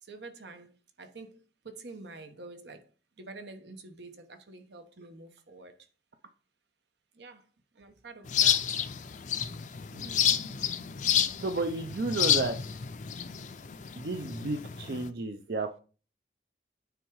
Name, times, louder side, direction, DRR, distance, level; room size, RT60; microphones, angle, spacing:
voice 1, 0.0-2.9 3.2-5.8 7.1-7.5 7.7-8.8, right 3 dB, 80° right, 1.1 m, -47 dB
sound 1, 8.3-15.1, left 9 dB, 45° left, 0.4 m, -30 dB
voice 2, 11.4-12.5 13.9-15.8, right 2 dB, 60° right, 0.5 m, -32 dB
9.1 x 3.6 x 4.7 m
head